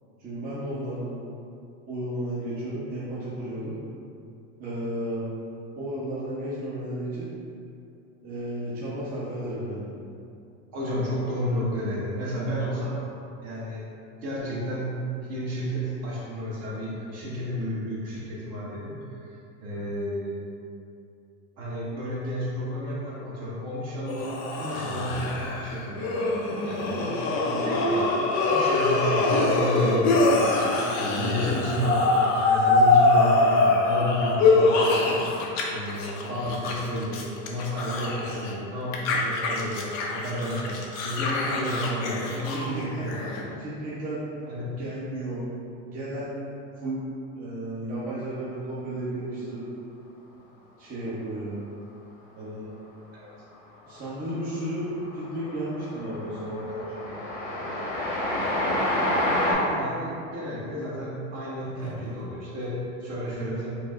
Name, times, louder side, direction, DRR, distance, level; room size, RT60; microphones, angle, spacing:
voice 1, 0.2-1.1 1.9-3.7 4.6-5.3 5.8-7.3 8.2-9.9 27.0-27.9 42.5-43.2 43.6-44.2 44.8-45.5 45.8-46.4 46.8-47.1 47.3-49.7 50.8-51.6 52.4-52.7 53.8-57.1, right 1 dB, 25° right, -11 dB, 0.8 m, -33 dB
voice 2, 10.7-13.0 13.4-13.8 14.2-15.0 15.3-19.3 19.6-20.4 21.6-26.3 26.6-27.0 27.7-28.0 28.4-35.2 35.7-40.8 41.0-43.5 44.5-44.7 53.1-53.2 59.3-63.7, equal, 40° right, -6 dB, 1.2 m, -31 dB
sound 1, 24.1-35.6 35.9-38.5 38.9-43.4, left 2 dB, 45° left, 0.6 m, -24 dB
Train, 53.8-54.3 54.6-59.5, left 1 dB, 85° left, 1.3 m, -28 dB
4.7 x 2.0 x 3.6 m, 2.6 s
supercardioid pair, 135°, 38 cm